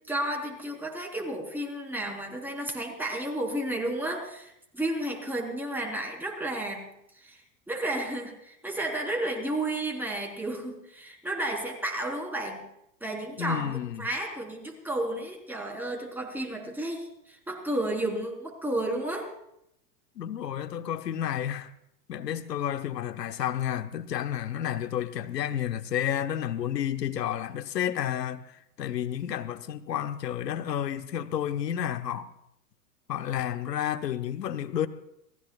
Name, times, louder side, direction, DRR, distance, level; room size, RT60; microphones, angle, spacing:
voice 1, 0.1-6.9 7.2-12.7 13.0-19.3, right 1 dB, 5° right, 4.0 m, -32 dB
voice 2, 13.4-14.1 20.2-21.7 22.1-32.3 33.1-34.9, left 10 dB, 85° left, 1.0 m, -31 dB
28.0 x 17.0 x 2.4 m
hypercardioid pair, 105°, 48 cm